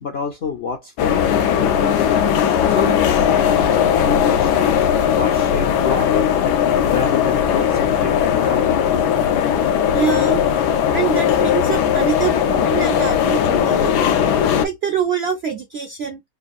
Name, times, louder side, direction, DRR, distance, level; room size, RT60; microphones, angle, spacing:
voice 1, 0.0-2.2 2.7-4.7 5.2-6.3 6.9-9.0, left 5 dB, 65° left, 0.6 m, -28 dB
sound 1, 1.0-14.7, left 9 dB, 85° left, 1.2 m, -18 dB
voice 2, 9.9-10.4 10.9-14.2 14.6-16.2, right 7 dB, 70° right, 0.6 m, -24 dB
3.5 x 2.4 x 2.5 m
omnidirectional pair, 1.7 m